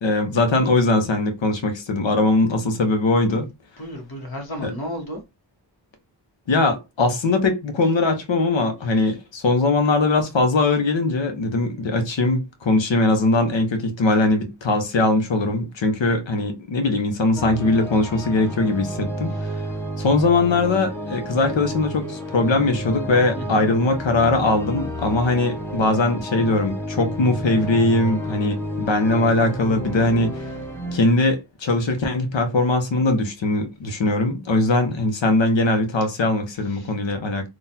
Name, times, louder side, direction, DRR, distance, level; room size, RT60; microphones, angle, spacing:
voice 1, 0.0-3.5 4.6-4.7 6.5-19.3 20.0-30.5 30.9-37.5, left 2 dB, 85° left, 0.9 m, -21 dB
voice 2, 3.8-5.2 23.4-23.6 36.7-36.9, equal, 55° left, 1.4 m, -33 dB
sound 1, 17.4-31.1, equal, 5° left, 0.9 m, -31 dB
3.9 x 2.5 x 2.7 m
wide cardioid pair, 75°, 43 cm